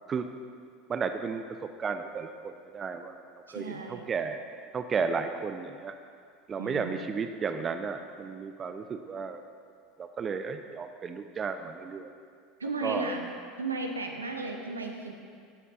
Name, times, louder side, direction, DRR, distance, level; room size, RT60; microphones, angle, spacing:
voice 1, 0.9-1.4 1.8-3.2 3.5-4.4 4.7-5.9 6.5-9.4 10.0-12.1 12.8-13.1, right 5 dB, 30° right, 8 dB, 0.4 m, -33 dB
voice 2, 3.5-4.1 6.6-7.1 12.6-13.3 13.6-15.1, right 3 dB, 80° right, 3 dB, 0.8 m, -35 dB
15.5 x 7.7 x 2.5 m, 2.2 s
figure-of-eight pair, 75°, 0 cm